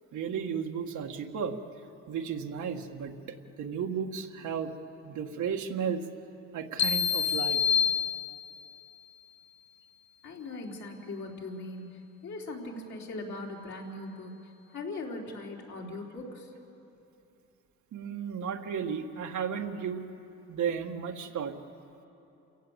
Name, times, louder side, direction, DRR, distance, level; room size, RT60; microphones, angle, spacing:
voice 1, 0.1-1.6 2.1-4.7 5.0-6.1 6.5-7.6 17.9-20.0 20.5-21.6, right 7 dB, 75° right, 3 dB, 1.8 m, -34 dB
sound 1, 6.8-8.7, left 7 dB, 40° left, 0.6 m, -27 dB
voice 2, 10.2-14.4 14.7-16.5, left 2 dB, 65° left, -2 dB, 4.2 m, -40 dB
28.0 x 17.0 x 8.2 m, 3.0 s
cardioid pair, 90°, 30 cm